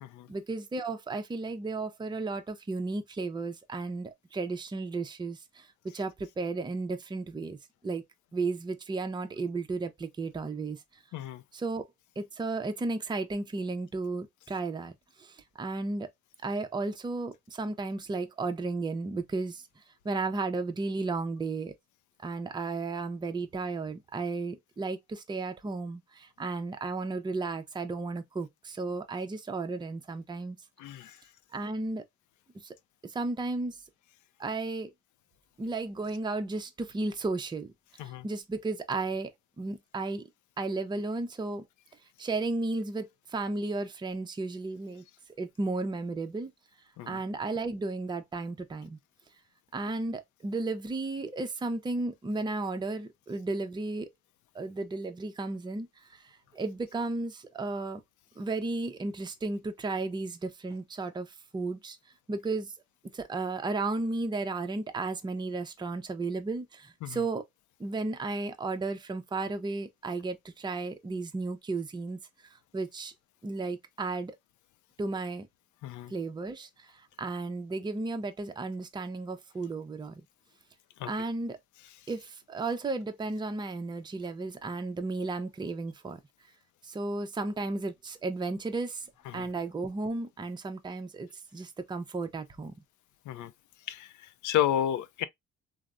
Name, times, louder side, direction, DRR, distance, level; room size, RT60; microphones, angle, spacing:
voice 1, 0.3-7.6 7.8-8.0 8.3-10.8 11.5-11.9 12.2-14.9 15.2-16.1 16.4-19.7 20.0-21.7 22.2-30.6 31.5-32.0 32.6-32.7 33.0-33.8 34.4-34.9 35.6-37.7 38.0-39.3 39.6-40.2 40.6-41.6 42.2-45.0 45.4-46.5 47.1-49.0 49.7-54.1 54.5-58.0 58.4-62.0 62.3-62.7 63.1-67.4 67.8-73.1 73.4-74.4 75.0-75.5 76.1-80.2 81.1-81.6 82.1-86.2 86.8-89.1 89.3-92.7, right 3 dB, 15° right, 0.5 m, -34 dB
voice 2, 30.8-31.2 38.0-38.3 47.0-47.2 67.0-67.2 75.8-76.1 81.0-81.1 89.3-89.5 93.3-93.5 93.9-94.1 94.4-95.2, left 11 dB, 75° left, 0.4 m, -31 dB
3.2 x 2.0 x 2.3 m
cardioid pair, 90°, 30 cm